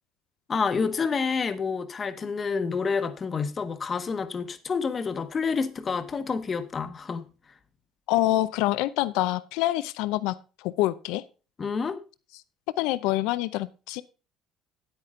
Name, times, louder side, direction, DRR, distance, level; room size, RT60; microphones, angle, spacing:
voice 1, 0.5-7.2 11.6-12.0, left 5 dB, 25° left, 1.1 m, -28 dB
voice 2, 8.1-10.4 10.6-11.2 12.8-14.0, left 16 dB, 80° left, 0.6 m, -26 dB
9.7 x 8.8 x 3.7 m
cardioid pair, 135°, 0 cm